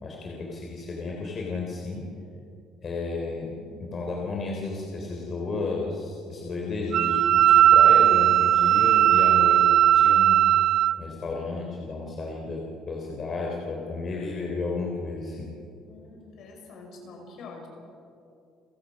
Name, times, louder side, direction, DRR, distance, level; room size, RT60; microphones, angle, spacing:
voice 1, 0.0-2.0 2.8-9.6 9.9-10.4 11.0-15.5, left 3 dB, 35° left, -1 dB, 3.5 m, -32 dB
Wind instrument woodwind instrument, 6.9-11.0, right 11 dB, 65° right, 0.5 m, -18 dB
voice 2, 15.8-17.7, left 3 dB, 60° left, 2 dB, 6.1 m, -45 dB
30.0 x 16.0 x 6.4 m, 2.6 s
cardioid pair, 120°, 0 cm